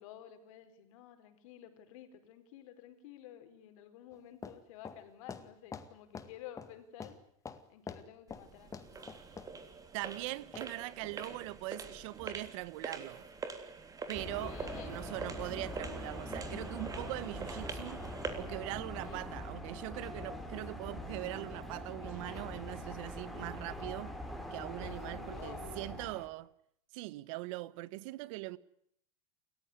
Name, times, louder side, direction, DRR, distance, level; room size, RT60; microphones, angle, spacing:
voice 1, 0.0-7.2 7.7-9.6 10.7-11.3 14.4-15.0 19.0-19.2 20.2-20.4 24.8-25.8, left 11 dB, 70° left, 4.7 m, -52 dB
sound 1, 4.1-4.2 4.4-4.6 4.9-5.0 5.3-6.3 6.6-6.7 7.0-7.2 7.5-8.1 8.3-8.5 8.7-9.5 10.5-10.7, left 5 dB, 20° left, 2.1 m, -45 dB
sound 2, 8.3-18.5, right 4 dB, 20° right, 3.4 m, -45 dB
voice 2, 9.9-13.3 14.1-18.0 18.3-24.1 24.5-26.5 26.9-28.6, right 20 dB, 65° right, 1.3 m, -41 dB
sound 3, 14.1-26.3, equal, ahead, 4.5 m, -43 dB
29.0 x 14.5 x 9.8 m
supercardioid pair, 130°, 17 cm